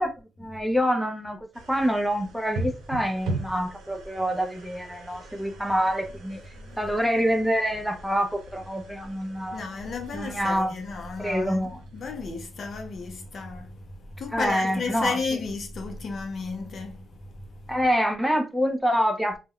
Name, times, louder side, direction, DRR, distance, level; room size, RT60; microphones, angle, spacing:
voice 1, 0.0-1.4 1.7-6.4 6.8-9.6 10.1-10.8 11.2-11.8 14.3-15.2 17.7-19.4, equal, 5° right, 0.5 m, -26 dB
sound 1, 1.5-12.6, right 2 dB, 80° right, 0.6 m, -40 dB
voice 2, 6.5-6.9 9.5-17.6, left 4 dB, 50° left, 0.6 m, -34 dB
2.2 x 2.1 x 3.5 m
cardioid pair, 90°, 0 cm